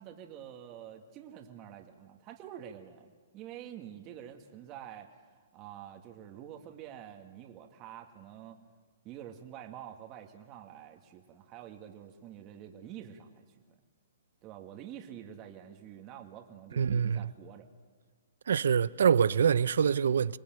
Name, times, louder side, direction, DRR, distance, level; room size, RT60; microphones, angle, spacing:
voice 1, 0.0-5.3 5.5-8.6 9.0-13.8 14.4-17.7, right 10 dB, 30° right, 2.2 m, -47 dB
voice 2, 16.8-17.3 18.5-20.4, right 7 dB, 75° right, 0.7 m, -25 dB
25.5 x 19.5 x 9.3 m
hypercardioid pair, 140°, 0 cm